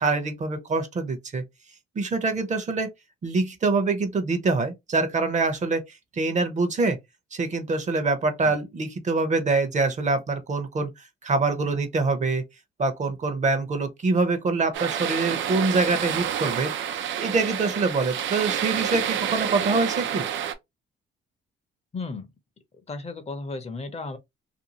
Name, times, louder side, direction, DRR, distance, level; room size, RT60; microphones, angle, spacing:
voice 1, 0.0-1.4 1.9-2.9 3.2-7.0 7.3-12.4 12.8-16.7 17.2-20.3, right 3 dB, 35° right, 0.7 m, -25 dB
sound 1, 14.7-20.5, right 9 dB, 75° right, 0.5 m, -28 dB
voice 2, 21.9-22.3 22.7-24.2, left 3 dB, 30° left, 0.6 m, -34 dB
2.6 x 2.3 x 2.8 m
cardioid pair, 90°, 20 cm